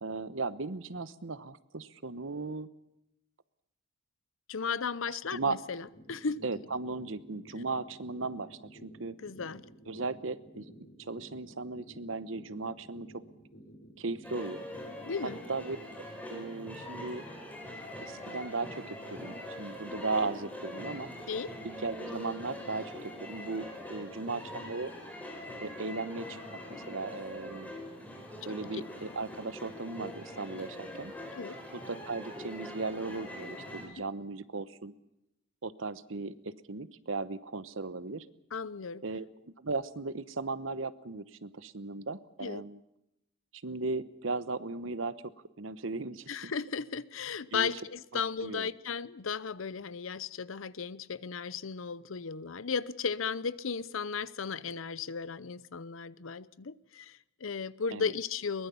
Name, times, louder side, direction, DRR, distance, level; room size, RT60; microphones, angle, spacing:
voice 1, 0.0-2.7 5.3-5.6 6.4-9.1 9.9-13.1 14.0-14.6 15.5-15.8 16.3-17.2 18.0-21.1 21.6-24.9 25.6-26.6 26.9-27.7 28.4-31.1 31.7-34.9 35.6-38.3 39.0-42.8 43.6-45.3 45.6-46.5 47.5-47.7 48.1-48.7 57.9-58.1, right 3 dB, 80° right, 1.0 m, -37 dB
voice 2, 4.5-6.4 9.2-9.6 15.1-15.4 21.3-21.6 28.7-28.8 31.3-31.6 38.5-39.0 42.4-42.6 46.3-58.7, left 5 dB, 85° left, 0.7 m, -35 dB
sound 1, 5.8-15.8, right 1 dB, 65° left, 7.5 m, -53 dB
sound 2, 14.2-33.9, left 1 dB, 10° left, 4.2 m, -43 dB
22.5 x 20.5 x 7.0 m
head